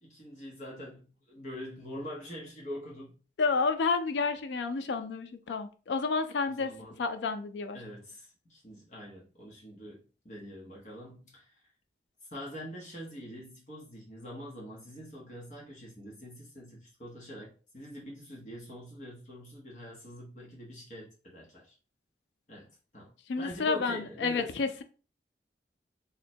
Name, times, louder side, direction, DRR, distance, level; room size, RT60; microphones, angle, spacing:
voice 1, 0.0-3.2 6.5-7.0 7.7-11.6 12.3-21.7 22.5-22.7 22.9-24.7, equal, 40° left, 1.0 m, -44 dB
voice 2, 3.4-6.7 7.0-7.8 23.3-24.8, left 4 dB, 90° left, 0.4 m, -30 dB
3.7 x 2.2 x 4.2 m
head